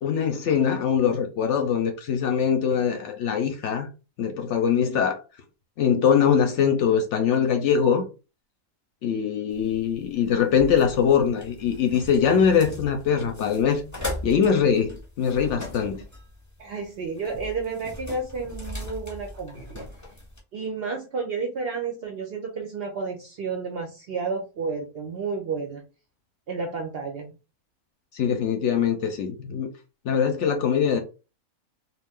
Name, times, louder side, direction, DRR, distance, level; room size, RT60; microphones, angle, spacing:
voice 1, 0.0-3.9 4.2-5.2 5.8-8.1 9.0-13.9 14.2-16.0 28.1-29.7 30.0-31.0, left 7 dB, 65° left, 0.8 m, -22 dB
sound 1, 9.5-20.4, left 1 dB, 15° left, 0.6 m, -39 dB
voice 2, 16.6-19.8 20.5-25.8 26.5-27.3, right 4 dB, 65° right, 0.6 m, -31 dB
2.4 x 2.4 x 3.5 m
omnidirectional pair, 1.5 m